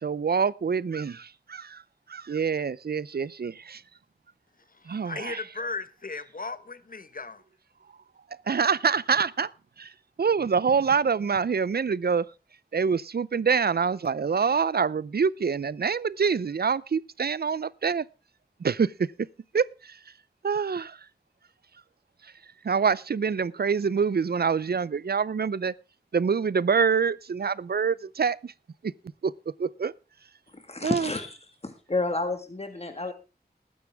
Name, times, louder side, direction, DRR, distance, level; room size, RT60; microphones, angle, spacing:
voice 1, 0.0-1.8 2.1-3.8 4.9-5.4 8.5-9.5 9.8-9.9 10.2-12.3 12.7-18.1 18.6-19.1 19.5-20.0 20.4-21.0 22.2-22.3 22.6-25.7 26.1-28.5 28.8-28.9 29.2-29.3 29.6-29.9 30.8-31.1, right 6 dB, 70° right, 0.6 m, -26 dB
voice 2, 4.7-7.4, left 3 dB, 55° left, 1.1 m, -36 dB
voice 3, 30.5-31.4 31.6-33.1, left 2 dB, 40° left, 1.8 m, -30 dB
19.5 x 9.5 x 3.5 m
wide cardioid pair, 65°, 17 cm